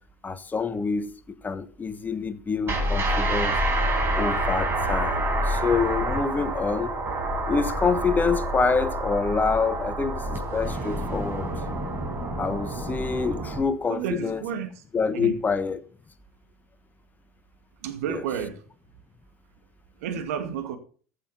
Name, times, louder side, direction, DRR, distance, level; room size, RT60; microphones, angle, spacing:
voice 1, 0.2-1.1 1.4-3.6 4.2-7.0 7.5-11.5 12.4-14.4 14.9-15.8 18.1-18.2, left 5 dB, 20° left, 1.3 m, -26 dB
sound 1, 2.7-13.6, right 1 dB, 25° right, 4.6 m, -27 dB
voice 2, 13.9-14.7 15.1-15.3 17.8-18.6 20.0-20.8, right 8 dB, 65° right, 2.2 m, -31 dB
15.0 x 6.9 x 5.7 m
hypercardioid pair, 75°, 8 cm